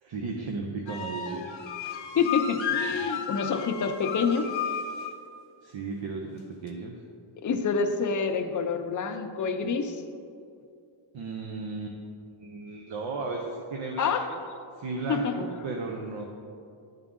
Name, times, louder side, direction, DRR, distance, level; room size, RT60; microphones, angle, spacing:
voice 1, 0.0-1.5 5.6-7.0 11.1-12.0 12.4-14.4 14.8-16.2, right 3 dB, 70° right, 1 dB, 0.7 m, -35 dB
sound 1, 0.9-5.2, left 6 dB, 70° left, 0.8 m, -33 dB
voice 2, 1.8-4.5 7.4-10.0 14.0-14.3 15.1-15.3, left 5 dB, 40° left, 6 dB, 0.5 m, -27 dB
11.0 x 3.7 x 3.7 m, 2.4 s
wide cardioid pair, 130°, 48 cm